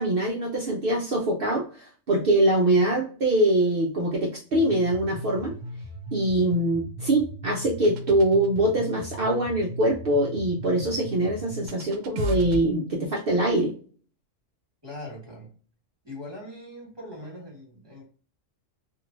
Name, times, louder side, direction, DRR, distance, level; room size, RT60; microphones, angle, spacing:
voice 1, 0.0-5.6 6.1-13.8, right 1 dB, 60° right, 0 dB, 0.7 m, -23 dB
sound 1, 4.5-12.6, left 1 dB, 80° right, 0.9 m, -36 dB
voice 2, 14.8-15.5 16.0-18.0, left 1 dB, 20° right, -3 dB, 1.3 m, -41 dB
3.0 x 2.5 x 2.5 m, 0.43 s
omnidirectional pair, 1.3 m